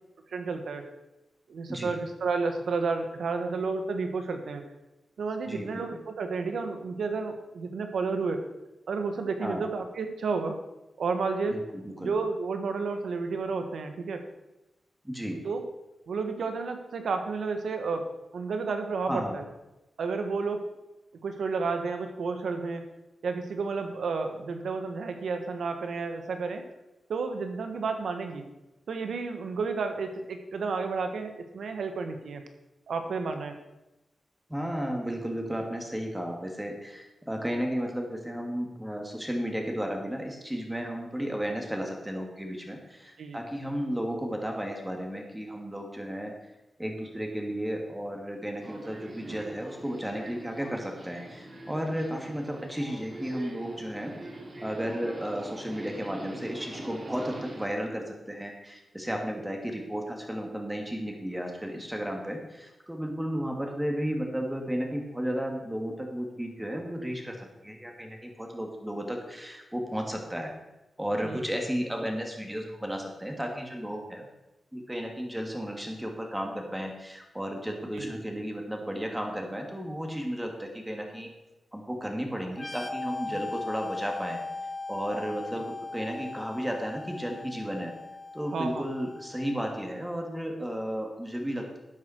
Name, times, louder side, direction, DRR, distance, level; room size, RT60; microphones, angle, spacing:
voice 1, 0.3-0.9 1.5-4.6 5.2-8.4 8.9-10.6 11.0-11.6 12.0-14.2 15.4-15.6 16.1-19.4 20.0-20.6 21.2-22.8 23.2-26.6 27.1-28.4 28.9-32.4 32.9-33.6 43.2-43.4 51.7-52.0 71.2-71.4 77.9-78.1 83.3-83.4 88.5-88.8, right 4 dB, 85° right, 6 dB, 1.4 m, -31 dB
voice 2, 5.4-6.0 9.4-9.6 11.5-12.1 15.0-15.4 19.1-19.4 34.5-46.3 46.8-54.1 54.6-70.5 71.0-74.3 74.7-81.3 81.7-84.4 84.9-87.9 88.3-91.8, equal, 10° right, 2 dB, 2.6 m, -33 dB
Subway metro underground, 48.6-57.7, right 1 dB, 35° right, 3.9 m, -43 dB
sound 1, 82.5-90.0, left 3 dB, 30° left, 1.2 m, -39 dB
12.5 x 9.3 x 4.6 m, 0.98 s
cardioid pair, 75°, 0 cm